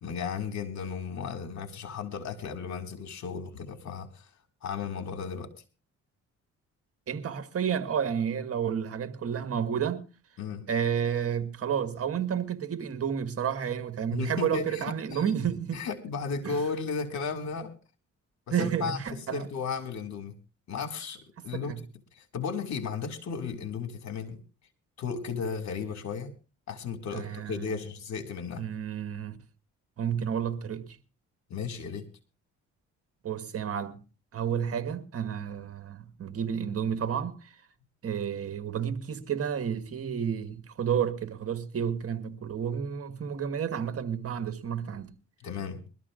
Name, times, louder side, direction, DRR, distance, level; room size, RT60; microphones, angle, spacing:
voice 1, 0.0-4.3 4.6-5.5 10.4-10.7 14.1-15.2 15.7-17.7 18.5-20.4 20.7-21.7 22.2-24.4 25.0-26.3 26.7-28.6 31.5-32.1 45.4-45.8, left 5 dB, 65° left, 2.3 m, -35 dB
voice 2, 7.1-10.0 10.7-15.8 16.4-16.5 18.5-19.5 21.4-21.8 27.1-27.7 28.6-29.4 30.0-31.0 33.2-34.0 34.3-37.5 38.0-45.1, right 8 dB, 50° right, 1.5 m, -31 dB
22.5 x 13.0 x 2.5 m
cardioid pair, 90°, 30 cm